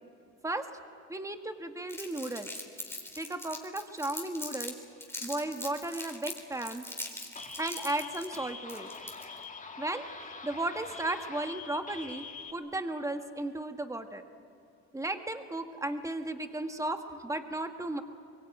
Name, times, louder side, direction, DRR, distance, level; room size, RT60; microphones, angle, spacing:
voice 1, 1.1-2.5 3.2-4.7 5.2-6.8 7.6-8.9 9.8-10.0 10.4-14.2 14.9-18.0, right 2 dB, 10° right, 6 dB, 1.7 m, -35 dB
Crumpling crinkling, 1.9-4.7 5.0-9.4, left 1 dB, 10° left, 3.9 m, -41 dB
sound 1, 7.4-12.5, left 4 dB, 25° left, 2.0 m, -44 dB
23.5 x 23.0 x 9.0 m, 2.5 s
cardioid pair, 90°, 30 cm